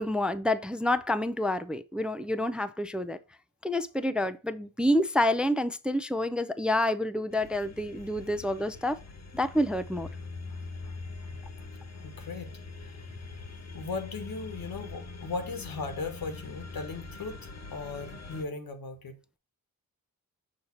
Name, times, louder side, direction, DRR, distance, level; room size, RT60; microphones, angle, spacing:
voice 1, 0.0-3.2 3.6-9.0 9.3-10.1, left 1 dB, 5° right, 0.3 m, -28 dB
sound 1, 7.3-18.4, left 3 dB, 50° left, 1.1 m, -43 dB
voice 2, 10.5-11.3 11.6-11.7 11.9-12.5 12.8-13.0 13.7-19.1, left 4 dB, 90° left, 1.3 m, -38 dB
6.5 x 2.8 x 5.7 m
wide cardioid pair, 80°, 34 cm